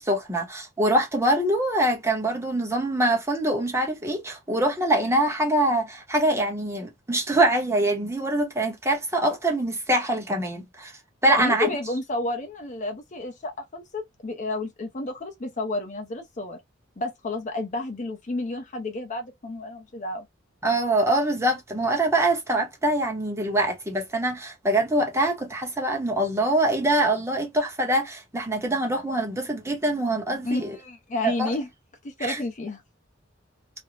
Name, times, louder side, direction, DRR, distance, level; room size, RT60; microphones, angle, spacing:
voice 1, 0.0-10.9 11.2-11.7 20.6-30.8 31.2-31.5 32.2-32.4, right 1 dB, 15° right, 0.8 m, -24 dB
voice 2, 11.4-16.6 17.0-20.3 30.4-31.7 32.0-32.8, left 2 dB, 40° left, 0.5 m, -31 dB
2.5 x 2.0 x 3.0 m
head